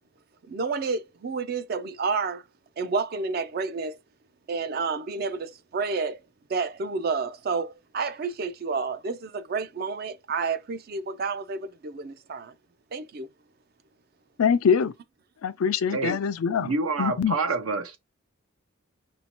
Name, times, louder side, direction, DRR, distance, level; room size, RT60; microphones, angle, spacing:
voice 1, 0.5-2.4 2.8-4.0 4.5-6.2 6.5-12.5 12.9-13.3, right 4 dB, 45° right, 0.4 m, -30 dB
voice 2, 14.4-14.9 15.4-16.7 17.0-17.3, left 6 dB, 90° left, 0.4 m, -23 dB
voice 3, 16.6-18.0, right 3 dB, 80° right, 0.7 m, -27 dB
5.0 x 2.7 x 2.9 m
head